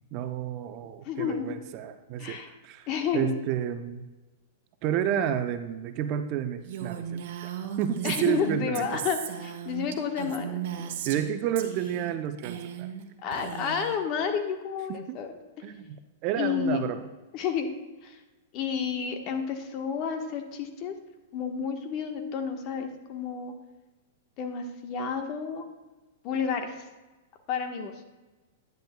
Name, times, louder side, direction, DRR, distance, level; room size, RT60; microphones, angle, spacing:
voice 1, 0.1-2.4 2.6-2.9 3.1-4.0 4.8-7.5 7.8-9.0 11.1-12.9 14.9-15.2 15.6-16.0 16.2-17.0, right 10 dB, 45° right, 9 dB, 0.7 m, -30 dB
voice 2, 1.0-1.5 2.2-2.5 2.9-3.4 8.0-10.9 13.2-15.3 16.4-16.8 17.3-17.7 18.0-18.2 18.5-20.9 21.3-23.5 24.4-25.6 26.2-26.7 27.5-27.9, left 6 dB, 45° left, 5 dB, 1.3 m, -30 dB
Female speech woman speaking, 6.7-11.3 11.6-12.1 12.4-13.0 13.3-14.0, right 8 dB, 60° right, 1.2 m, -36 dB
10.5 x 10.5 x 2.3 m, 1.1 s
hypercardioid pair, 115°, 0 cm